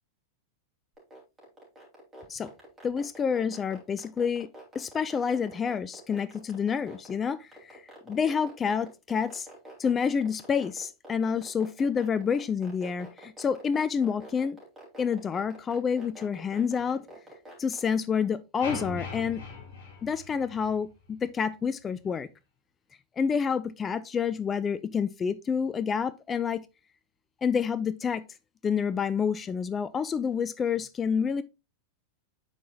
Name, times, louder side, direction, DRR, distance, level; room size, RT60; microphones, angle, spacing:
sound 1, 1.0-17.9, right 1 dB, 10° right, 3.3 m, -47 dB
voice 1, 2.8-4.5 4.7-7.8 8.1-9.5 9.8-14.6 15.0-17.0 17.6-19.4 20.0-22.3 23.2-26.6 27.4-28.2 28.6-31.4, left 6 dB, 20° left, 0.4 m, -28 dB
sound 2, 18.6-20.9, left 4 dB, 50° left, 2.5 m, -39 dB
8.9 x 4.8 x 2.4 m
figure-of-eight pair, 90°, 0 cm